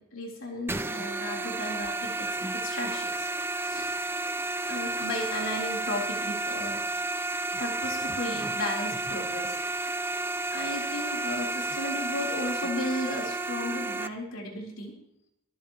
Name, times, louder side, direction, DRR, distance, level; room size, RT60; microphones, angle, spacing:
voice 1, 0.0-2.2 2.5-3.3 3.6-3.9 4.7-6.8 7.6-9.5 10.5-14.9, left 1 dB, 70° left, -1 dB, 3.6 m, -34 dB
sound 1, 0.7-14.1, right 2 dB, 10° right, 0.4 m, -31 dB
27.0 x 10.5 x 3.0 m, 0.78 s
head